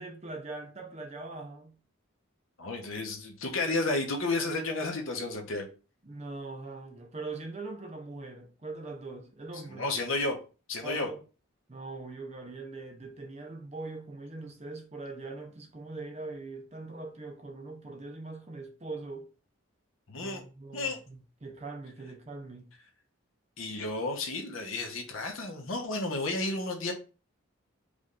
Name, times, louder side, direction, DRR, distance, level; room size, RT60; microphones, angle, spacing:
voice 1, 0.0-1.8 6.0-9.9 10.8-11.2 11.7-19.3 20.2-22.7, right 3 dB, 30° right, 0.6 m, -42 dB
voice 2, 2.6-5.7 9.7-10.4 10.7-11.1 20.1-20.4 20.7-21.0 23.6-26.9, left 2 dB, 75° left, 1.2 m, -32 dB
5.0 x 2.6 x 3.6 m
head